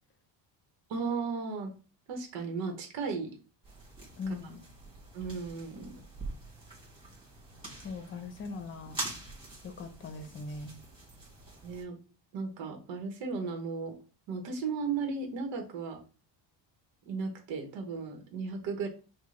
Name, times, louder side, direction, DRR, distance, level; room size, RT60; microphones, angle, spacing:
voice 1, 0.9-1.7 2.1-3.4 4.3-4.4 5.1-6.0 11.6-12.0 12.3-13.9 14.3-16.0 17.1-18.9, right 4 dB, 85° right, 4 dB, 1.1 m, -35 dB
sound 1, 3.6-11.8, right 2 dB, 10° right, 1.7 m, -45 dB
voice 2, 4.2-4.6 7.8-9.0 9.6-10.8, left 3 dB, 30° left, 8 dB, 0.7 m, -40 dB
5.9 x 2.3 x 3.2 m, 0.35 s
cardioid pair, 165°, 44 cm